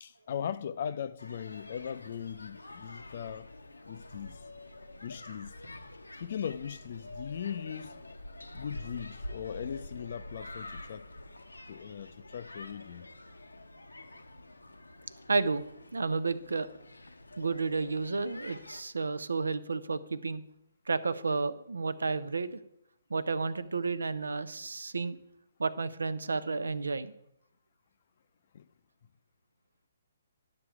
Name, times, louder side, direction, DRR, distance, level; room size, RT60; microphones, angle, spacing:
voice 1, 0.0-3.5 3.9-4.4 5.0-5.5 6.2-8.0 8.5-11.1 11.7-13.1 28.5-28.6, left 8 dB, 45° left, 0.4 m, -39 dB
sound 1, 1.2-18.8, left 1 dB, 80° left, 0.8 m, -47 dB
voice 2, 15.3-15.6 15.9-16.7 17.4-20.4 20.9-22.6 23.1-25.2 25.6-27.1, right 4 dB, 70° right, 0.5 m, -31 dB
11.0 x 6.7 x 4.7 m
figure-of-eight pair, 130°, 0 cm